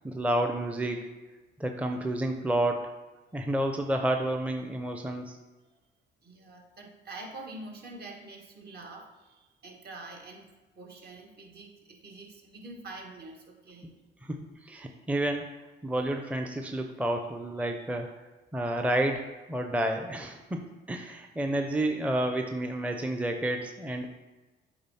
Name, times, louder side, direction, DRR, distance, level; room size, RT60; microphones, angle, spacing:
voice 1, 0.0-1.1 1.6-2.9 3.3-5.4 14.2-18.1 18.5-24.1, right 1 dB, 5° right, 4 dB, 0.6 m, -30 dB
voice 2, 6.2-13.9, right 2 dB, 55° right, 0 dB, 1.8 m, -46 dB
8.6 x 3.2 x 5.6 m, 1.2 s
cardioid pair, 90°, 20 cm